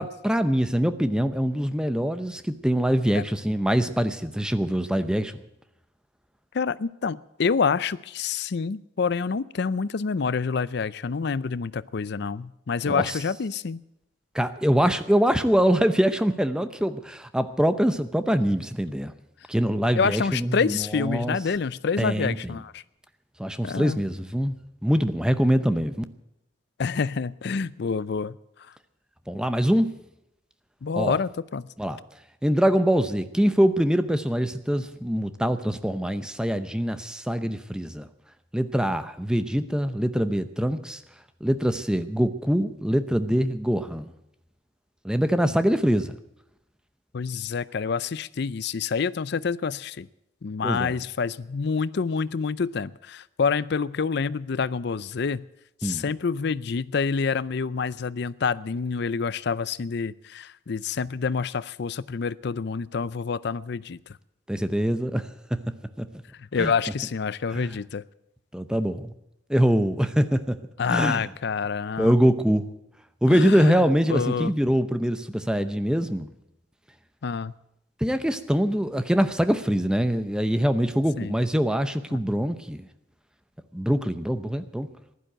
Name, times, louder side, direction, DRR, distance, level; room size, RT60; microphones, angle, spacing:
voice 1, 0.0-5.3 12.9-13.1 14.3-19.1 19.5-21.4 22.0-22.5 23.4-24.6 24.8-26.0 29.3-29.9 31.0-31.2 31.8-32.0 32.4-38.1 38.5-41.0 41.4-44.1 45.0-46.1 50.6-50.9 55.8-56.0 64.5-65.6 66.0-66.1 66.6-66.7 67.5-67.7 68.5-69.1 69.5-70.6 70.9-71.3 72.0-72.6 73.2-76.3 78.0-82.9 83.7-84.9, equal, 5° right, 10 dB, 0.7 m, -24 dB
voice 2, 6.5-13.8 19.9-22.8 23.6-24.0 26.8-28.3 30.8-31.7 47.1-50.1 50.4-55.4 55.8-64.0 66.4-68.0 70.8-72.2 73.3-74.5 77.2-77.5 81.2-81.3 82.1-82.2, left 5 dB, 60° left, 18 dB, 0.5 m, -27 dB
15.0 x 11.5 x 7.9 m, 0.84 s
head